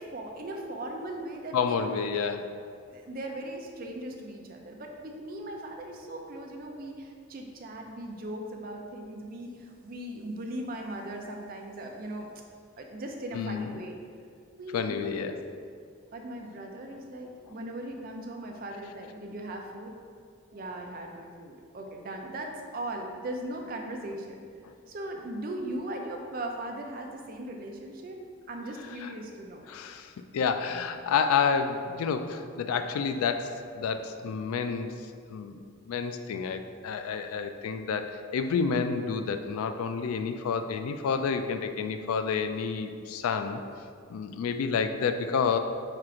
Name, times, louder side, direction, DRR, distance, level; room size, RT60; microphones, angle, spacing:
voice 1, 0.0-2.0 2.9-12.3 12.8-14.0 14.5-15.4 16.1-19.9 20.5-24.4 24.9-28.2 28.5-29.7, right 1 dB, 40° right, 2 dB, 0.4 m, -38 dB
voice 2, 1.5-2.5 13.3-13.7 14.7-15.3 29.0-29.1 29.7-35.0 35.3-35.6 35.8-43.6 44.1-45.6, left 6 dB, 85° left, 8 dB, 0.3 m, -29 dB
4.4 x 2.5 x 4.9 m, 2.2 s
head